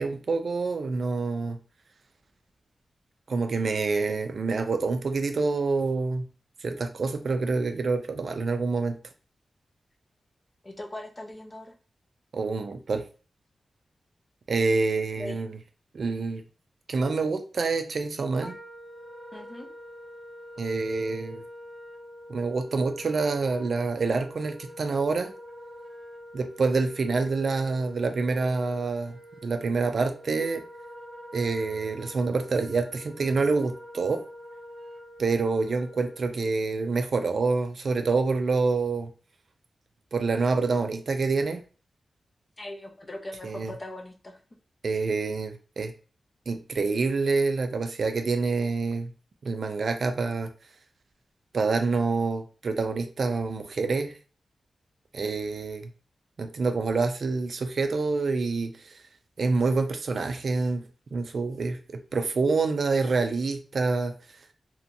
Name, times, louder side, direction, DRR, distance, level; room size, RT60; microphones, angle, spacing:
voice 1, 0.0-1.6 3.3-6.3 6.6-9.0 12.3-13.0 14.5-15.6 15.9-16.4 16.9-18.6 20.6-21.4 22.3-25.3 26.3-29.1 29.4-30.6 31.3-34.2 35.2-39.1 40.1-41.6 43.4-43.7 44.8-45.9 46.5-49.1 49.4-50.5 51.5-54.2 55.1-55.9 56.4-59.0 59.4-60.9 61.1-61.8 62.1-64.1, right 4 dB, 55° right, 7 dB, 0.3 m, -27 dB
voice 2, 10.6-11.7 15.2-15.4 19.3-19.7 42.6-44.4, left 1 dB, 25° left, 4 dB, 0.4 m, -40 dB
Wind instrument woodwind instrument, 18.4-36.5, equal, 10° right, 0.9 m, -45 dB
2.8 x 2.2 x 2.5 m, 0.37 s
wide cardioid pair, 155°, 0 cm